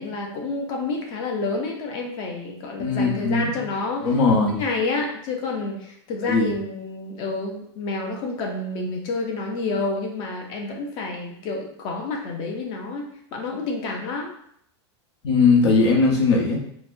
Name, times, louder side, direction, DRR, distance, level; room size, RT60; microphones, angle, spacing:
voice 1, 0.0-4.1 4.5-14.3, left 3 dB, 30° left, 2 dB, 0.5 m, -29 dB
voice 2, 2.8-3.7 4.0-4.6 6.2-6.6 15.2-16.6, left 4 dB, 70° left, 0 dB, 0.9 m, -19 dB
3.9 x 2.1 x 2.6 m, 0.68 s
supercardioid pair, 165°, 15 cm